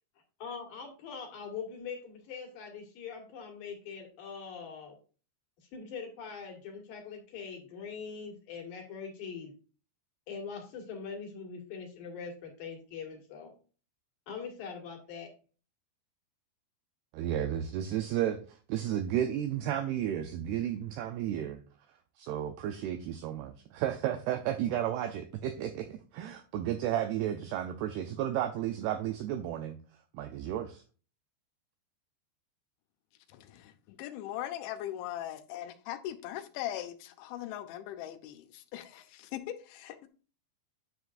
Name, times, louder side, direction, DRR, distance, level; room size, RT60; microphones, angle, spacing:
voice 1, 0.4-5.0 5.7-9.5 10.3-13.5 14.3-15.3, left 6 dB, 60° left, 3.1 m, -42 dB
voice 2, 17.1-21.6 22.2-29.8 30.1-30.8, right 11 dB, 90° right, 2.2 m, -33 dB
voice 3, 33.3-40.1, left 12 dB, 85° left, 3.1 m, -40 dB
9.9 x 7.0 x 2.5 m
omnidirectional pair, 5.3 m